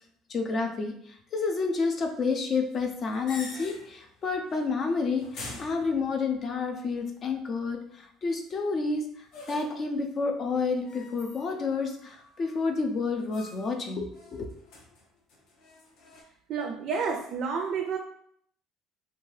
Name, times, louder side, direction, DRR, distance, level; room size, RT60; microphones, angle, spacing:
voice 1, 0.3-14.5, left 4 dB, 40° left, 4 dB, 0.5 m, -30 dB
sound 1, 2.7-4.1 4.4-4.8 5.2-6.5 9.3-9.9 10.8-11.7 12.0-12.7 13.3-13.8 14.1-16.2, left 2 dB, 70° left, 0.7 m, -46 dB
voice 2, 16.5-18.0, right 5 dB, 60° right, 3 dB, 0.3 m, -30 dB
2.7 x 2.3 x 3.1 m, 0.68 s
cardioid pair, 120°, 0 cm